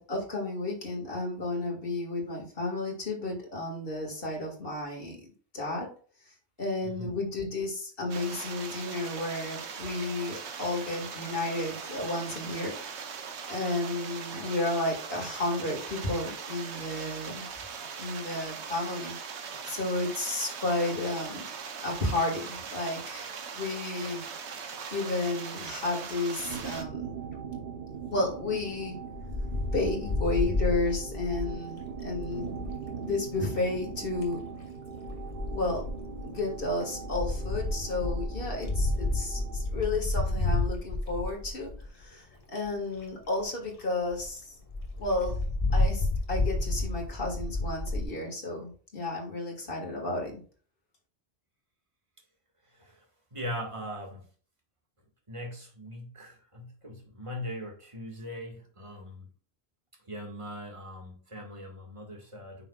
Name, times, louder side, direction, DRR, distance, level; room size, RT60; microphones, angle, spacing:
voice 1, 0.0-5.2 5.5-5.9 6.6-12.8 13.5-17.5 18.0-21.5 21.8-24.2 24.9-27.1 28.1-29.0 29.7-32.6 33.0-34.4 35.5-35.8 36.2-44.5 45.0-45.4 45.7-50.4, left 2 dB, 55° left, 2.3 m, -32 dB
voice 2, 6.8-7.1 52.7-53.1 53.3-54.3 55.3-59.3 60.1-62.7, equal, 30° right, 1.9 m, -40 dB
sound 1, 8.1-26.8, right 6 dB, 80° right, 1.2 m, -40 dB
sound 2, 26.4-39.7, right 6 dB, 50° right, 1.0 m, -41 dB
Wind, 29.1-32.8 33.9-34.3 35.1-42.0 42.6-42.7 43.0-43.1 43.4-43.5 43.8-43.9 44.1-44.3 44.7-48.0, left 2 dB, 30° left, 1.5 m, -31 dB
8.8 x 5.9 x 2.4 m
omnidirectional pair, 1.1 m